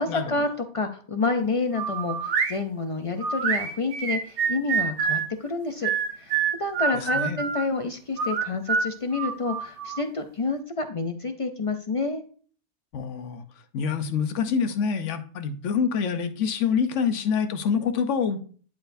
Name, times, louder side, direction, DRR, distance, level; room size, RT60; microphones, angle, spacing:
voice 1, 0.0-12.2, left 3 dB, 50° left, 7 dB, 0.4 m, -29 dB
sound 1, 1.7-2.6 3.2-5.3 5.8-7.7 8.2-10.0, right 6 dB, 75° right, 1.1 m, -26 dB
voice 2, 6.9-7.4 12.9-13.4 13.7-18.4, left 6 dB, 90° left, 9 dB, 1.1 m, -26 dB
10.5 x 4.5 x 2.6 m, 0.43 s
omnidirectional pair, 1.2 m